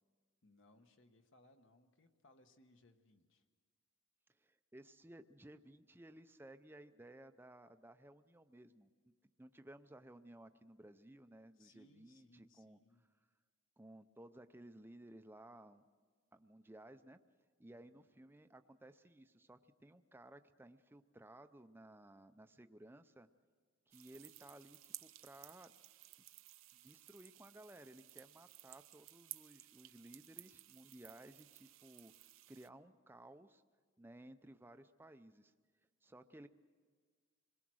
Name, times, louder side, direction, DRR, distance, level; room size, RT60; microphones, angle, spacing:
voice 1, 0.4-3.4 11.6-13.0 17.7-18.1, left 1 dB, 60° left, 6 dB, 1.3 m, -68 dB
voice 2, 4.3-8.9 9.4-12.8 13.8-15.8 16.3-17.2 17.6-23.3 23.9-25.7 26.7-32.1 32.5-33.6 34.0-35.5 36.0-36.5, right 1 dB, 10° right, 9 dB, 0.5 m, -58 dB
sound 1, 23.9-32.7, right 16 dB, 65° right, 0.6 m, -57 dB
26.5 x 21.0 x 6.3 m, 1.6 s
head